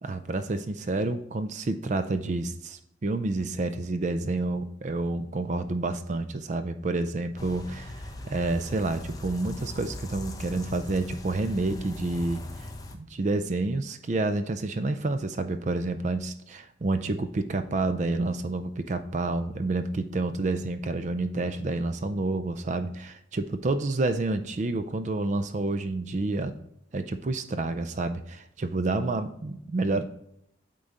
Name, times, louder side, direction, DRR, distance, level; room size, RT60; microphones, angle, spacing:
voice 1, 0.0-26.6 26.9-30.0, right 2 dB, 40° right, 10 dB, 0.4 m, -29 dB
sound 1, 7.4-13.0, left 1 dB, 20° left, 0.7 m, -40 dB
8.6 x 3.8 x 4.0 m, 0.78 s
head